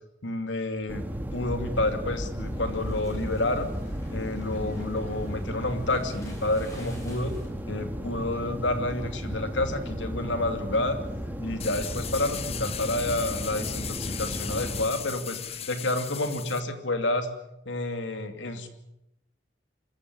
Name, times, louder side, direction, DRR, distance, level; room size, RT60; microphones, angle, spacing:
voice 1, 0.2-1.0 1.3-3.7 4.1-7.3 7.7-11.0 11.4-17.3 17.7-18.7, left 2 dB, 85° left, 7 dB, 2.7 m, -29 dB
sound 1, 0.8-7.6, equal, 15° left, 7.2 m, -40 dB
sound 2, 0.9-14.9, equal, 10° right, 2.4 m, -35 dB
sound 3, 11.6-16.6, left 9 dB, 35° left, 0.8 m, -37 dB
25.0 x 14.5 x 9.7 m, 0.88 s
head